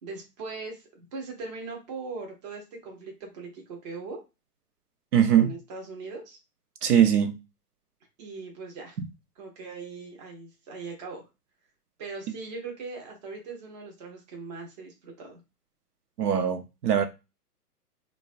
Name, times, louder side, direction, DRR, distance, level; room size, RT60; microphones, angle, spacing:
voice 1, 0.0-4.2 5.3-6.4 8.2-9.0 9.4-11.2 12.0-15.4, right 4 dB, 25° right, 0.6 m, -40 dB
voice 2, 5.1-5.5 6.8-7.4 16.2-17.0, right 9 dB, 75° right, 0.6 m, -21 dB
2.5 x 2.2 x 2.4 m
hypercardioid pair, 140°, 48 cm